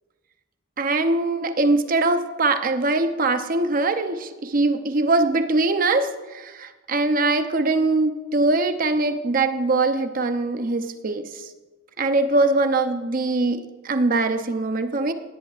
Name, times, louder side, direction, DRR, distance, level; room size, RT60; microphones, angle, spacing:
voice 1, 0.8-11.3 12.0-15.1, right 2 dB, 45° right, 8 dB, 0.6 m, -22 dB
17.0 x 8.8 x 2.4 m, 1.2 s
head